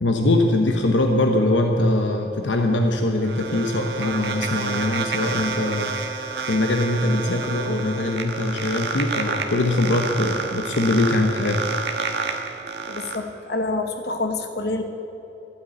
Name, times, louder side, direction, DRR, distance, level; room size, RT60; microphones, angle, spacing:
voice 1, 0.0-11.6, left 2 dB, 75° left, 4 dB, 1.0 m, -22 dB
sound 1, 2.7-13.2, right 4 dB, 60° right, 1.3 m, -29 dB
voice 2, 12.9-14.8, left 2 dB, 60° left, 5 dB, 1.2 m, -27 dB
12.5 x 8.4 x 8.8 m, 3.0 s
head